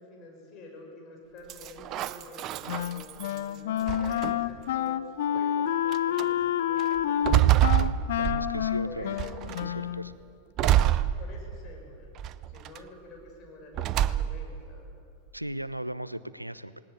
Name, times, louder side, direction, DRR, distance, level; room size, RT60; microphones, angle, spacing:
voice 1, 0.0-7.7 8.8-9.6 11.2-12.2 12.5-15.0, left 2 dB, 35° left, 1 dB, 6.4 m, -48 dB
sound 1, 1.5-3.4 3.9-4.6 5.4-5.5 5.9-6.3 6.8-8.7 9.2-9.7 10.6-11.7 12.2-12.8 13.7-14.6, right 12 dB, 35° right, 0.6 m, -26 dB
Wind instrument woodwind instrument, 2.7-10.1, left 10 dB, 55° left, 0.8 m, -29 dB
voice 2, 8.1-9.2 9.6-10.1 10.6-11.0 15.3-16.8, right 1 dB, 90° right, 17 dB, 0.6 m, -37 dB
19.5 x 18.0 x 9.6 m, 2.5 s
figure-of-eight pair, 90°, 0 cm